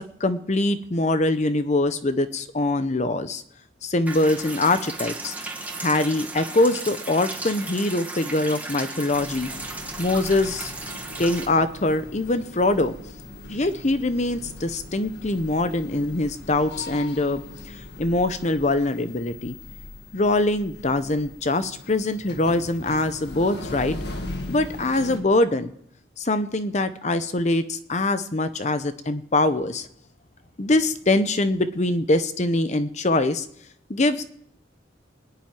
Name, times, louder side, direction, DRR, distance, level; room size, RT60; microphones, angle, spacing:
voice 1, 0.2-3.4 3.8-5.3 5.8-9.5 10.0-10.7 11.2-12.9 13.5-19.6 20.1-24.0 24.5-25.7 26.2-29.9 30.6-33.5 33.9-34.2, left 2 dB, 40° left, 11 dB, 0.8 m, -23 dB
sound 1, 4.1-11.5, right 3 dB, 10° right, 1.6 m, -35 dB
sound 2, 9.1-25.2, left 2 dB, 60° left, 1.9 m, -39 dB
20.5 x 7.4 x 9.5 m, 0.71 s
head